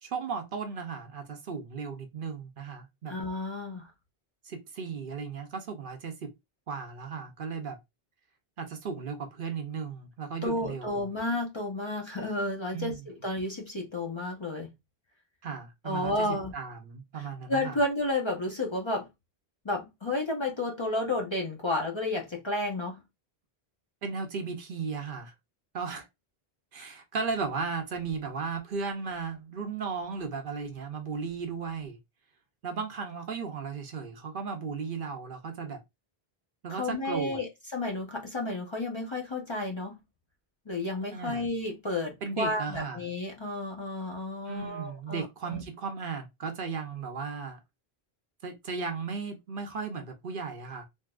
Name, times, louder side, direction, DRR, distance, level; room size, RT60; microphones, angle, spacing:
voice 1, 0.0-3.1 4.4-6.3 6.7-7.8 8.6-11.1 12.7-13.0 15.4-16.3 16.5-17.8 24.0-25.3 25.7-26.1 26.7-32.0 32.6-35.8 36.6-37.4 41.1-41.4 42.2-43.0 44.5-47.6 48.4-50.9, right 5 dB, 60° right, 0.7 m, -35 dB
voice 2, 3.1-3.9 10.4-14.7 15.8-16.5 17.1-19.1 19.6-23.0 36.7-40.0 40.7-45.6, left 2 dB, 30° left, 0.6 m, -32 dB
3.5 x 2.6 x 2.3 m
omnidirectional pair, 1.0 m